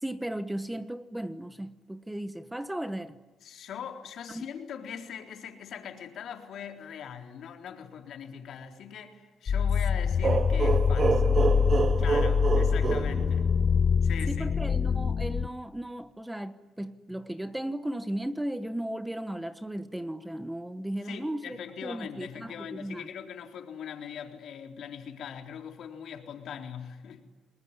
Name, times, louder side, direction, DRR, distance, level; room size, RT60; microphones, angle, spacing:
voice 1, 0.0-3.2 4.3-4.5 14.3-23.1, right 1 dB, 5° right, 11 dB, 1.3 m, -36 dB
voice 2, 3.4-11.4 11.9-13.6 14.0-14.6 21.0-27.2, left 8 dB, 70° left, 3 dB, 3.9 m, -41 dB
sound 1, 9.5-15.5, left 6 dB, 50° left, 0.8 m, -25 dB
sound 2, 10.2-13.9, right 5 dB, 40° right, 0.9 m, -28 dB
28.5 x 21.0 x 9.9 m, 1.2 s
cardioid pair, 90°, 0 cm